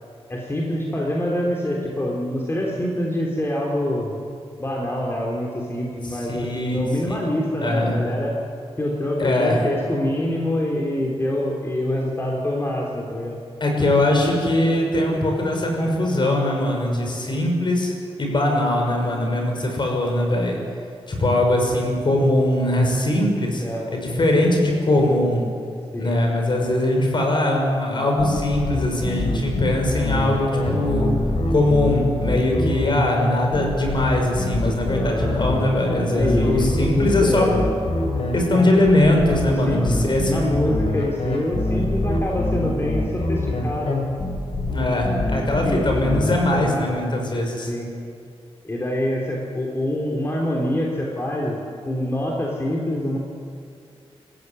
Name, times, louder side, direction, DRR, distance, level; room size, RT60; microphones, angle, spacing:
voice 1, 0.3-4.1 4.6-8.4 8.8-13.4 23.6-23.8 25.9-26.2 34.9-35.4 36.1-37.7 39.5-44.1 45.5-45.8 47.7-47.9 48.6-51.6 51.9-53.2, left 1 dB, 25° left, -2 dB, 3.3 m, -25 dB
voice 2, 6.3-6.8 7.1-7.2 7.6-8.0 9.2-9.6 13.6-17.9 18.2-20.6 21.1-23.6 23.9-25.4 26.0-31.1 31.5-37.5 38.3-40.6 44.7-47.7, left 1 dB, 45° left, 1 dB, 6.0 m, -21 dB
sound 1, 28.2-46.7, left 2 dB, 60° left, 4.9 m, -25 dB
25.5 x 15.0 x 9.7 m, 2.4 s
wide cardioid pair, 105°, 11 cm